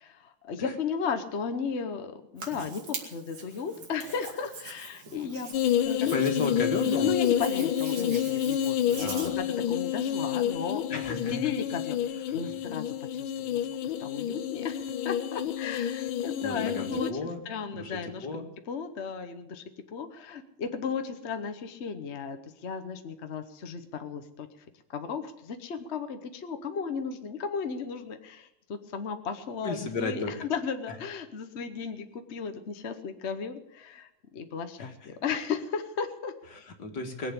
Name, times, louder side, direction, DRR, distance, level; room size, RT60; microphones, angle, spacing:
voice 1, 0.0-5.6 5.8-6.1 7.0-11.0 11.3-12.8 13.1-13.6 14.0-19.6 19.9-24.5 24.9-34.1 34.3-36.3, left 6 dB, 45° left, 8 dB, 1.0 m, -35 dB
Hands, 2.4-9.3, right 4 dB, 85° right, 3.3 m, -43 dB
muovi-la-coda-e-prega, 5.5-17.1, left 10 dB, 90° left, 1.6 m, -29 dB
voice 2, 6.0-7.1 9.0-9.4 10.9-11.4 12.3-12.4 16.4-17.4 17.7-18.5 29.6-30.3 34.8-34.9 36.5-37.3, left 3 dB, 60° left, 4 dB, 2.6 m, -33 dB
21.0 x 8.0 x 8.4 m, 0.85 s
omnidirectional pair, 2.1 m